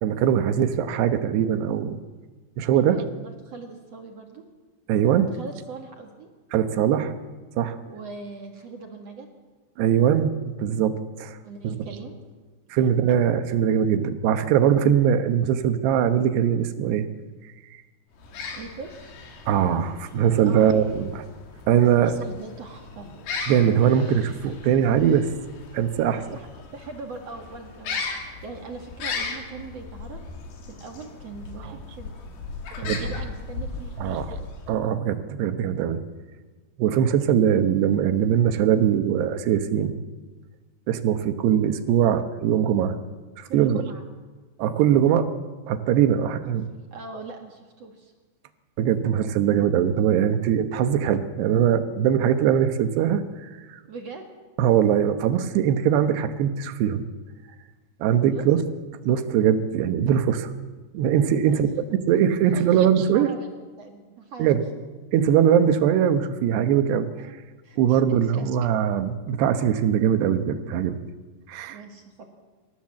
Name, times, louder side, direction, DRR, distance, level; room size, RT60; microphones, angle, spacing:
voice 1, 0.0-2.0 2.6-3.0 4.9-5.3 6.5-7.1 7.6-7.8 9.8-11.4 11.6-11.9 12.7-17.1 19.5-21.2 21.7-22.2 23.5-25.3 25.7-26.4 31.6-31.8 32.8-33.1 34.0-34.4 34.7-36.0 36.8-40.0 40.9-43.0 43.4-43.9 44.6-45.3 45.7-46.7 48.8-53.8 54.6-57.1 58.0-58.6 59.0-60.5 60.9-63.3 64.4-64.7 65.1-67.3 67.8-71.0 71.5-71.8, right 9 dB, 75° right, 10 dB, 3.1 m, -21 dB
voice 2, 2.7-4.4 5.3-6.3 7.9-9.3 11.4-12.1 12.8-12.9 18.5-19.1 20.4-20.7 21.7-23.1 26.2-30.2 30.7-32.1 32.7-34.5 43.4-44.1 46.4-46.6 46.9-48.1 53.8-54.3 58.2-58.5 61.4-61.6 62.5-62.8 63.1-63.5 63.8-64.6 67.6-68.5 71.7-72.3, right 4 dB, 50° right, 3 dB, 2.2 m, -41 dB
sound 1, 18.1-34.9, left 4 dB, 70° left, 4.7 m, -37 dB
27.0 x 15.0 x 7.6 m, 1.4 s
omnidirectional pair, 5.0 m